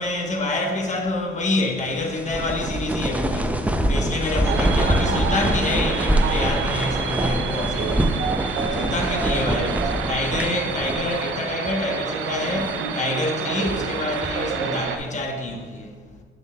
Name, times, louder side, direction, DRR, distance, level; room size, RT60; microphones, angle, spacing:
voice 1, 0.0-16.0, left 2 dB, 35° left, 1.1 m, -27 dB
sound 1, 1.9-11.4 11.6-11.8 12.4-12.8 13.4-14.5, right 1 dB, 5° right, 0.5 m, -25 dB
sound 2, 4.4-15.0, right 6 dB, 80° right, 0.6 m, -28 dB
8.8 x 6.8 x 2.3 m
cardioid pair, 90°, 20 cm